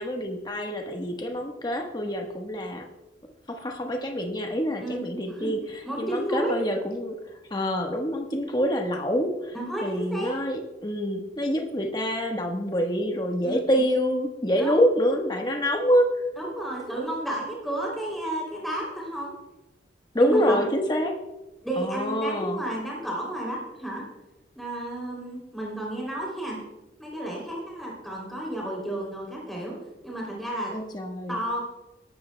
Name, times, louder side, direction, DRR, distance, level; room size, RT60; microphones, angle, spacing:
voice 1, 0.0-2.9 3.5-9.5 9.8-16.1 20.1-21.2 21.8-22.6 30.7-31.4, equal, 25° left, 3 dB, 1.2 m, -26 dB
voice 2, 5.8-6.5 9.5-10.3 13.4-13.8 14.6-14.9 16.4-19.3 20.1-20.7 21.6-24.0 24.5-26.6 27.0-29.7 30.0-30.7 31.3-31.6, right 1 dB, ahead, -4 dB, 3.0 m, -32 dB
19.0 x 13.0 x 2.2 m, 1.0 s
head